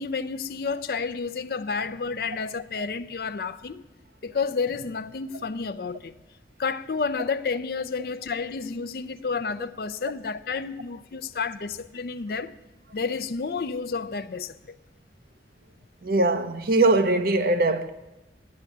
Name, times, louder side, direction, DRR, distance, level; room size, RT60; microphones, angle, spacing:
voice 1, 0.0-3.8 4.2-6.1 6.6-12.5 12.9-14.8, left 5 dB, 55° left, 0.5 m, -30 dB
voice 2, 16.0-17.9, right 2 dB, 55° right, 0.7 m, -21 dB
10.5 x 7.9 x 8.4 m
head